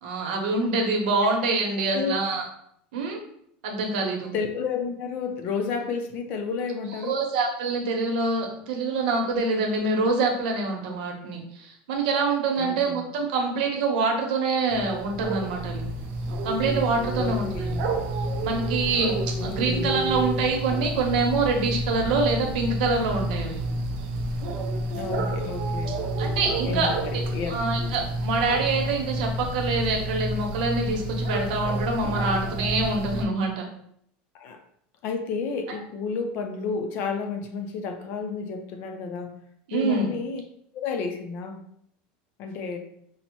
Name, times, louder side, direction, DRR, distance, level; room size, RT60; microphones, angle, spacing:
voice 1, 0.0-2.4 2.9-3.2 3.6-4.3 7.1-15.8 16.4-17.5 18.4-23.6 26.2-26.9 27.5-33.7 39.7-40.1, right 3 dB, 85° right, 2 dB, 0.9 m, -25 dB
voice 2, 1.9-2.2 4.3-7.2 12.6-13.0 17.2-17.8 19.4-20.3 24.9-26.0 26.6-27.6 34.3-34.6 35.0-39.3 39.7-40.4 40.7-41.6 42.4-42.8, left 5 dB, 40° left, 6 dB, 0.5 m, -31 dB
sound 1, 14.7-33.3, right 1 dB, 50° right, 0.5 m, -29 dB
5.3 x 2.0 x 3.0 m, 0.70 s
cardioid pair, 180°, 5 cm